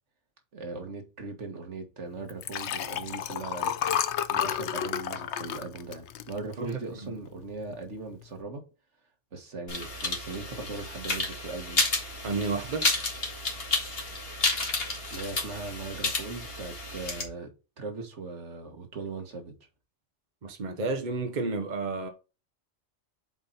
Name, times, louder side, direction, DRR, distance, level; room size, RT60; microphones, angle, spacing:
voice 1, 0.5-3.8 4.3-8.6 9.3-11.9 12.2-12.3 15.1-17.5 17.8-19.5, right 3 dB, 75° right, 1.8 m, -39 dB
Liquid, 2.3-6.9 7.4-7.7 7.9-8.0, left 9 dB, 75° left, 0.9 m, -31 dB
voice 2, 6.6-7.1 12.2-12.9 20.4-22.1, right 3 dB, 40° right, 1.1 m, -31 dB
sound 1, 9.7-17.2, left 2 dB, 55° left, 2.0 m, -31 dB
7.0 x 4.4 x 4.0 m
omnidirectional pair, 1.2 m